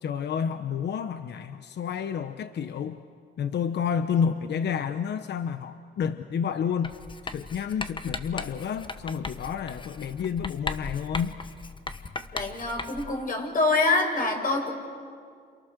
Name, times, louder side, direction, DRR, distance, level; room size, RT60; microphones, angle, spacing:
voice 1, 0.0-3.0 3.4-7.0 7.2-11.4, left 7 dB, 60° left, 10 dB, 1.1 m, -30 dB
Writing, 6.8-13.2, left 3 dB, 25° left, 1.3 m, -37 dB
voice 2, 12.3-14.7, left 3 dB, 45° left, 2 dB, 6.7 m, -25 dB
30.0 x 28.0 x 6.7 m, 2.2 s
cardioid pair, 90°, 20 cm